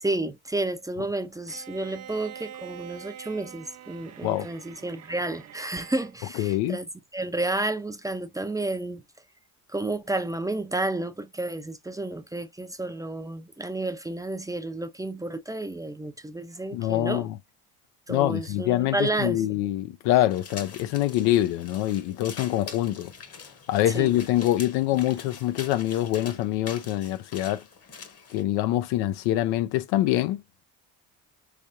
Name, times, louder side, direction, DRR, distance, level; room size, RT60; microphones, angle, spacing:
voice 1, 0.0-6.9 7.1-9.0 9.7-17.2 18.1-19.4 23.9-24.1, right 2 dB, 10° right, 0.5 m, -31 dB
Bowed string instrument, 1.5-6.1, right 10 dB, 45° right, 0.7 m, -45 dB
voice 2, 6.3-6.8 16.7-17.4 18.1-23.1 23.7-27.6 28.3-30.4, left 14 dB, 80° left, 0.5 m, -25 dB
sound 1, 20.3-28.4, left 5 dB, 40° left, 1.0 m, -44 dB
3.4 x 3.3 x 2.6 m
supercardioid pair, 75°, 38 cm